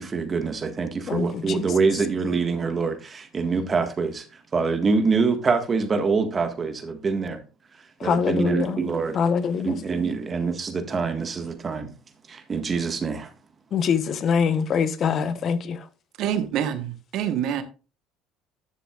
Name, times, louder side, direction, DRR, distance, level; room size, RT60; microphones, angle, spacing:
voice 1, 0.0-7.4 7.8-9.2 9.6-11.9 12.3-13.3, right 4 dB, 35° right, 1.6 m, -25 dB
voice 2, 1.1-1.7 8.0-8.8 9.1-9.8 13.7-15.9, left 6 dB, 50° left, 1.0 m, -24 dB
voice 3, 16.2-17.6, right 9 dB, 65° right, 1.2 m, -26 dB
11.0 x 6.9 x 2.4 m
supercardioid pair, 80°, 0 cm